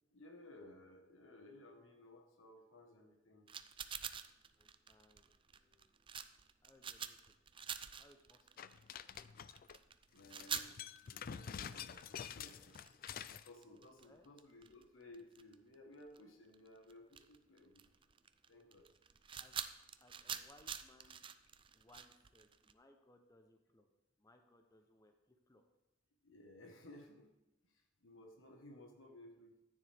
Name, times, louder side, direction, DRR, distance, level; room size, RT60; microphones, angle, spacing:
voice 1, 0.1-3.5 10.1-10.8 11.0-12.8 13.1-17.8 18.5-18.9 26.2-27.3 27.7-29.6, left 1 dB, 85° left, 3 dB, 1.4 m, -58 dB
sound 1, 3.5-15.7 16.0-16.2 16.5-22.7, right 8 dB, 25° right, 0.4 m, -47 dB
voice 2, 4.6-5.9 6.6-7.3 8.0-8.5 14.0-14.3 19.4-19.6 20.0-21.2 21.7-23.9 24.2-25.6, left 1 dB, 20° left, 5 dB, 0.7 m, -67 dB
sound 2, 8.6-9.8 10.2-13.5, left 8 dB, 45° left, 0.4 m, -48 dB
14.0 x 9.5 x 3.5 m, 0.98 s
head